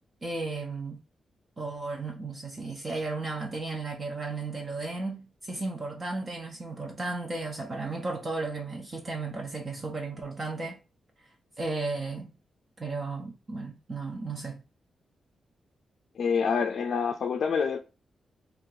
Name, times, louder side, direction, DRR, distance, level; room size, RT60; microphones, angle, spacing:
voice 1, 0.2-1.0 1.6-10.8 11.6-12.3 12.8-14.6, right 3 dB, 30° right, 0.5 m, -34 dB
voice 2, 16.2-17.8, left 6 dB, 65° left, 0.4 m, -27 dB
2.6 x 2.4 x 3.8 m
wide cardioid pair, 150°, 0 cm